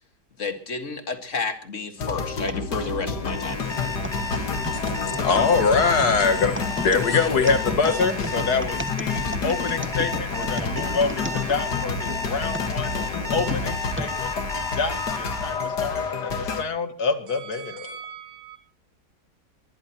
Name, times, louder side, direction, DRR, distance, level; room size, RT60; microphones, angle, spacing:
voice 1, 0.4-3.6, left 4 dB, 50° left, 2.2 m, -31 dB
sound 1, 2.0-16.6, left 5 dB, 90° left, 2.3 m, -29 dB
sound 2, 2.5-12.0 12.5-14.1 14.8-14.9 15.7-16.0, right 1 dB, 10° right, 1.0 m, -35 dB
Alarm, 3.1-15.6, left 3 dB, 15° left, 2.2 m, -33 dB
voice 2, 4.9-12.9 13.3-14.3 14.7-16.0 16.4-18.0, left 4 dB, 70° left, 2.3 m, -25 dB
voice 3, 6.0-7.9 17.3-18.6, right 11 dB, 60° right, 1.7 m, -45 dB
23.0 x 20.5 x 3.0 m
omnidirectional pair, 1.7 m